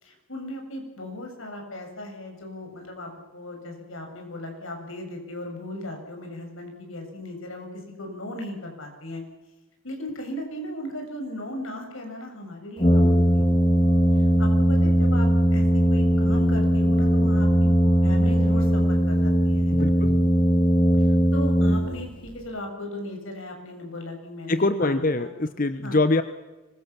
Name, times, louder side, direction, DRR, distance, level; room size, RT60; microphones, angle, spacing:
voice 1, 0.0-9.2 9.8-13.4 13.8-13.9 14.2-17.7 18.0-19.9 21.3-25.3 25.8-26.0, left 1 dB, 85° left, 3 dB, 7.1 m, -37 dB
Brass instrument, 12.8-22.3, equal, 25° left, 2.2 m, -19 dB
voice 2, 19.7-20.2 24.5-26.2, left 2 dB, 45° left, 11 dB, 1.0 m, -24 dB
25.0 x 22.5 x 7.2 m, 1.1 s
head